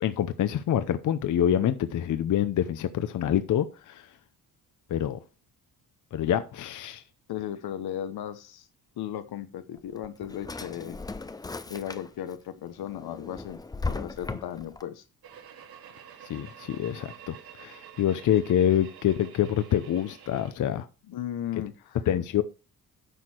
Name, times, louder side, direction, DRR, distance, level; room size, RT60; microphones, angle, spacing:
voice 1, 0.0-4.1 4.9-5.2 6.1-7.0 16.3-20.9 22.1-22.4, left 10 dB, 55° left, 0.7 m, -26 dB
voice 2, 7.3-8.7 9.0-11.0 11.7-13.6 13.9-15.0 21.1-22.0, left 10 dB, 80° left, 1.2 m, -36 dB
Drawer open or close, 9.8-12.3 12.8-14.8, left 3 dB, 10° left, 0.4 m, -37 dB
sound 1, 15.2-20.5, right 9 dB, 75° right, 2.0 m, -49 dB
10.0 x 6.5 x 4.4 m
wide cardioid pair, 170°, 37 cm